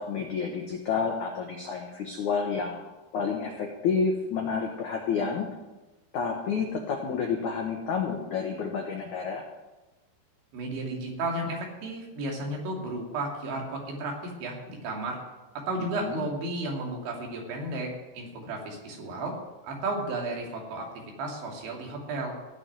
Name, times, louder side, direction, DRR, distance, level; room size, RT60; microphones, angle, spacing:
voice 1, 0.0-5.5 6.1-9.4 16.0-16.2, left 5 dB, 80° left, 1 dB, 1.7 m, -30 dB
voice 2, 10.5-15.2 15.6-19.4 19.6-20.9 21.2-22.4, right 2 dB, 70° right, 0 dB, 4.9 m, -33 dB
15.5 x 6.6 x 9.4 m, 1.1 s
omnidirectional pair, 5.5 m